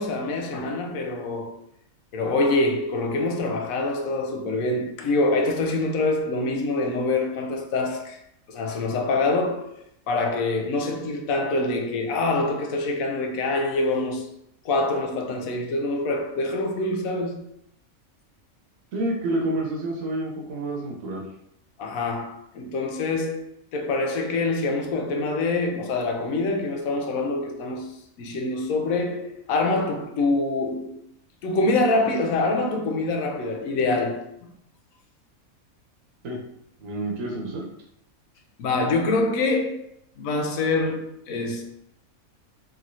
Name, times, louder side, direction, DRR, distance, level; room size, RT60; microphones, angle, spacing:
voice 1, 0.0-1.6 2.1-8.2 8.5-9.7 10.1-14.3 14.6-17.4 21.8-27.9 28.2-31.0 31.4-34.3 38.6-39.8 40.2-41.8, left 2 dB, 75° left, 1.0 m, -25 dB
voice 2, 18.9-21.3 36.2-36.4 36.8-37.6, right 1 dB, 70° right, 1.1 m, -28 dB
3.0 x 2.7 x 2.6 m
omnidirectional pair, 1.5 m